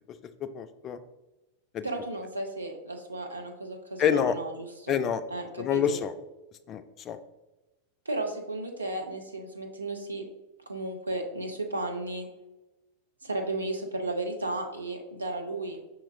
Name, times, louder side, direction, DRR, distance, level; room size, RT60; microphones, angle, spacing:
voice 1, 0.4-1.0 1.7-1.9 4.0-4.4 4.9-5.2 5.6-6.1 6.7-7.2, left 8 dB, 30° left, 10 dB, 0.3 m, -27 dB
voice 2, 1.8-5.0 5.3-6.0 8.1-10.2 10.7-12.3 13.2-15.8, right 2 dB, 80° right, 3 dB, 0.6 m, -34 dB
5.7 x 2.8 x 2.7 m, 1.0 s
figure-of-eight pair, 90°, 0 cm